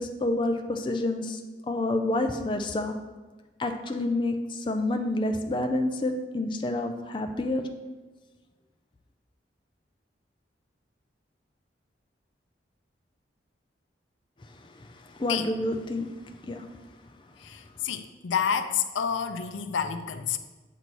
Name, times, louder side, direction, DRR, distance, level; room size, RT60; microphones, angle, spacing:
voice 1, 0.0-1.4 1.7-2.9 3.6-7.6 15.1-16.1 16.4-16.7, left 2 dB, 25° left, 5 dB, 0.4 m, -28 dB
voice 2, 17.4-20.4, left 7 dB, 90° left, 9 dB, 0.4 m, -29 dB
7.9 x 2.7 x 6.1 m, 1.2 s
head